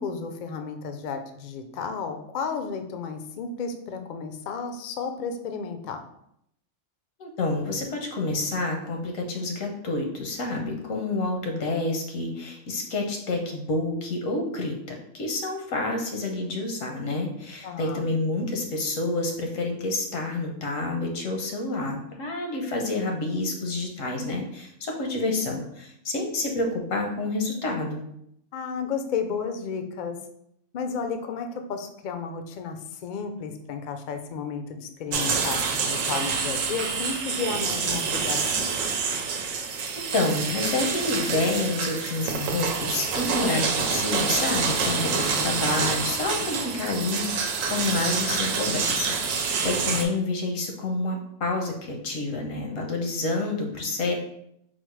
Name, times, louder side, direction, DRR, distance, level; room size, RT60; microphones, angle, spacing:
voice 1, 0.0-6.0 17.6-18.1 28.5-30.2 30.7-38.8 45.1-45.7, left 5 dB, 70° left, 6 dB, 0.4 m, -33 dB
voice 2, 7.2-14.8 15.1-28.0 40.1-54.1, left 2 dB, 90° left, 1 dB, 1.2 m, -28 dB
sound 1, 35.1-50.0, right 5 dB, 90° right, 1.0 m, -27 dB
4.3 x 2.0 x 4.5 m, 0.75 s
omnidirectional pair, 1.3 m